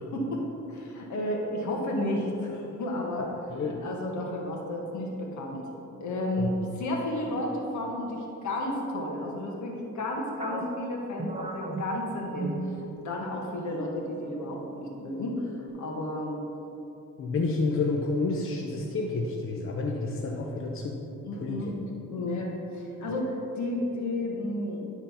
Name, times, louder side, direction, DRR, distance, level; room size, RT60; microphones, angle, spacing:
voice 1, 0.0-3.3 3.6-5.6 6.0-12.7 13.0-16.4 21.2-21.7 22.1-24.8, left 1 dB, 70° left, 0 dB, 1.7 m, -32 dB
sound 1, 10.4-13.2 13.6-13.8 14.4-14.9, right 2 dB, 20° right, 0.8 m, -36 dB
voice 2, 17.2-21.0 21.4-21.6, left 3 dB, 45° left, 0 dB, 0.9 m, -29 dB
11.0 x 4.0 x 5.8 m, 3.0 s
cardioid pair, 90°, 30 cm